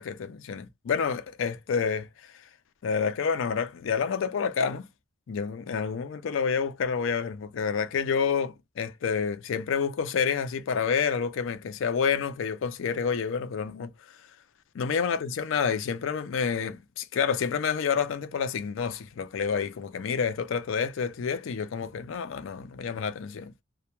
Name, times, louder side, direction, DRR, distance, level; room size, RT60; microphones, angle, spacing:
voice 1, 0.0-2.1 2.8-4.9 5.3-13.9 14.7-23.5, left 6 dB, 65° left, 0.4 m, -28 dB
2.1 x 2.1 x 2.9 m
head